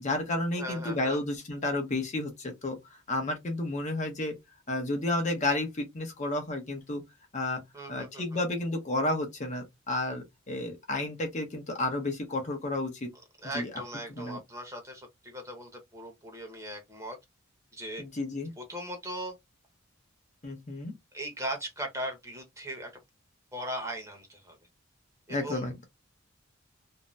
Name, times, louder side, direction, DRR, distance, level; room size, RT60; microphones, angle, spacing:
voice 1, 0.0-2.8 3.1-4.3 4.7-7.0 7.3-7.6 7.9-13.1 13.5-13.7 14.1-14.4 18.0-18.5 20.4-20.9 25.3-25.7, left 2 dB, 35° left, 0.7 m, -31 dB
voice 2, 0.6-1.2 7.7-8.4 13.4-17.2 17.7-18.0 18.6-19.3 21.1-22.9 23.5-24.6 25.3-25.7, right 1 dB, 15° right, 0.9 m, -38 dB
2.6 x 2.1 x 3.1 m
head